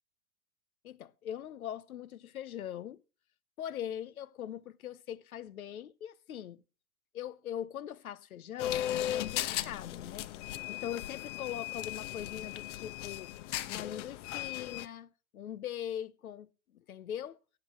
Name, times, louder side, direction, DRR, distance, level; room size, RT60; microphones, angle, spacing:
voice 1, 0.8-3.0 3.6-6.6 7.1-10.3 10.7-13.3 13.7-17.4, left 10 dB, 80° left, 0.9 m, -41 dB
sound 1, 8.6-14.9, left 12 dB, 60° left, 1.0 m, -37 dB
11.0 x 8.0 x 7.4 m
hypercardioid pair, 95°, 42 cm